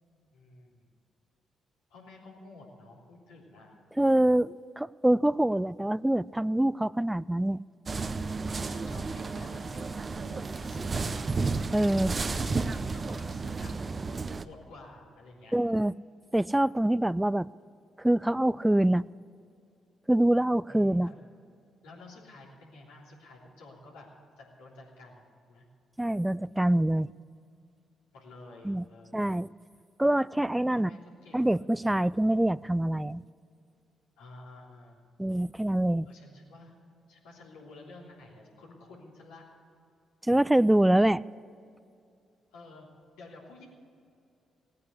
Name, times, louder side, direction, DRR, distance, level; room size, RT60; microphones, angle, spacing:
voice 1, 0.3-0.9 1.9-3.8 8.6-11.3 11.8-13.7 14.4-15.6 20.7-21.2 21.8-24.1 24.4-25.6 28.1-29.3 30.7-31.6 34.2-35.0 36.0-36.7 37.1-39.5 42.5-42.9 43.1-43.6, left 2 dB, 80° left, -4 dB, 3.3 m, -51 dB
voice 2, 4.0-7.6 11.7-12.1 15.5-15.9 16.3-17.5 18.0-19.1 20.1-21.1 26.0-27.1 28.6-28.8 29.1-29.5 30.0-30.9 31.3-33.2 35.2-36.1 40.3-41.2, right 1 dB, 10° right, 20 dB, 0.3 m, -25 dB
sound 1, 7.9-14.4, right 4 dB, 40° right, 0.7 m, -32 dB
17.0 x 9.5 x 8.3 m, 2.5 s
hypercardioid pair, 45°, 0 cm